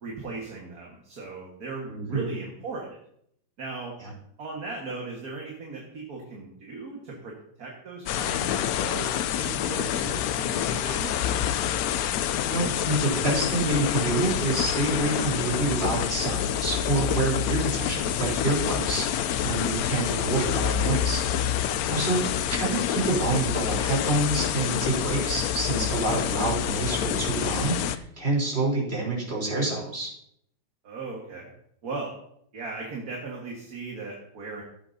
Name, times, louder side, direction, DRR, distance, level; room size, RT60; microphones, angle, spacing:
voice 1, 0.0-3.0 3.6-4.0 4.4-11.2 22.5-22.8 30.8-31.5 31.8-32.1 32.5-34.6, right 3 dB, 50° right, -2 dB, 2.0 m, -37 dB
voice 2, 1.9-2.2 4.0-4.1 12.5-21.5 21.8-30.1, right 2 dB, 30° right, -4 dB, 3.9 m, -27 dB
sound 1, 8.1-28.0, left 10 dB, 75° left, 0.8 m, -27 dB
16.0 x 8.5 x 2.7 m, 0.71 s
omnidirectional pair, 2.0 m